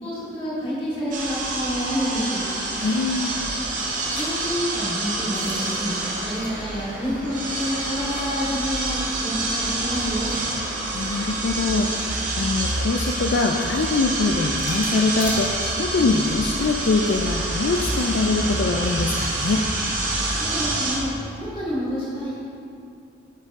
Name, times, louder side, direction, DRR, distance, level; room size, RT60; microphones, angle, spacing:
voice 1, 0.0-2.4 4.1-5.9 6.2-10.3 20.4-21.1 21.4-22.4, equal, 30° left, -7 dB, 2.1 m, -28 dB
sound 1, 1.1-21.0, right 2 dB, 45° right, 1.3 m, -27 dB
voice 2, 2.8-3.3 10.9-19.7, left 3 dB, 65° left, 2 dB, 0.4 m, -23 dB
sound 2, 3.8-8.5 8.9-9.0 10.0-19.3, left 2 dB, 50° left, 1.7 m, -43 dB
8.3 x 7.5 x 3.6 m, 2.6 s
head